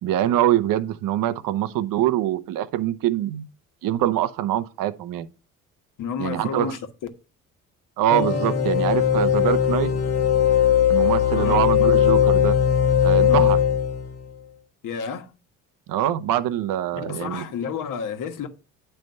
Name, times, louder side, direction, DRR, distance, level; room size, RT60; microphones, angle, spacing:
voice 1, 0.0-3.5 3.8-5.3 6.2-6.7 8.0-9.9 10.9-12.5 13.0-13.6 15.9-17.4, right 12 dB, 65° right, 0.8 m, -24 dB
voice 2, 6.0-6.8 11.3-11.9 13.3-13.5 14.8-15.3 16.9-18.5, left 7 dB, 60° left, 1.3 m, -31 dB
sound 1, 8.1-14.2, left 9 dB, 40° left, 1.2 m, -19 dB
9.2 x 3.4 x 5.4 m
supercardioid pair, 75°, 36 cm